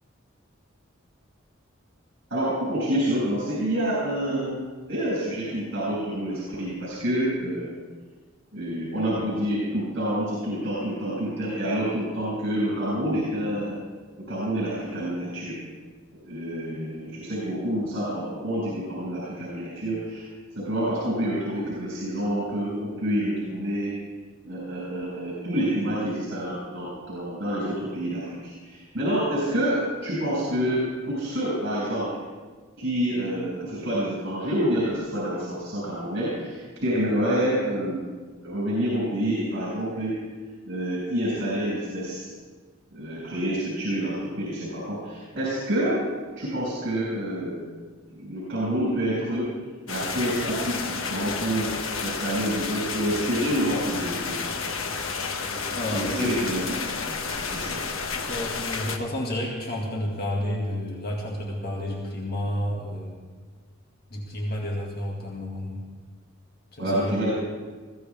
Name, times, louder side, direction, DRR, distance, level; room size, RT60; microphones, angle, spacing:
voice 1, 2.3-4.6 4.9-7.7 8.5-13.8 14.3-15.6 16.2-20.2 20.5-24.0 24.4-32.2 32.8-38.1 38.4-40.2 40.7-42.2 42.9-46.0 46.4-47.7 48.1-49.5 49.9-51.7 52.0-54.4 55.9-57.8 58.1-58.2 66.8-67.3, equal, 60° right, -6 dB, 6.2 m, -28 dB
sound 1, 49.9-59.0, left 5 dB, 85° left, 1.3 m, -31 dB
voice 2, 55.7-56.4 58.3-63.3 64.1-65.8 66.7-67.2, left 1 dB, 50° left, -2 dB, 2.1 m, -31 dB
21.5 x 16.0 x 3.6 m, 1.4 s
head